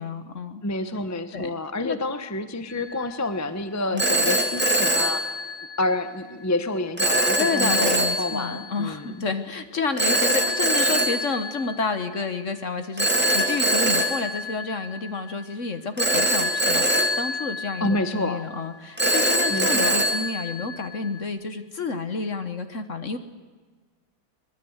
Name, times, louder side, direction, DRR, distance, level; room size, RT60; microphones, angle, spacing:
voice 1, 0.0-0.6 1.3-1.5 1.8-2.0 3.9-4.0 7.4-23.2, left 4 dB, 40° left, 9 dB, 1.4 m, -30 dB
voice 2, 0.6-5.2 5.8-9.2 17.8-18.4 19.5-20.1, left 2 dB, 15° left, 10 dB, 0.7 m, -28 dB
Telephone, 2.7-3.0 4.0-6.0 7.0-8.7 10.0-12.2 13.0-15.3 16.0-18.3 19.0-21.2, equal, 5° right, 1.8 m, -24 dB
23.0 x 21.0 x 8.1 m, 1.4 s
omnidirectional pair, 2.2 m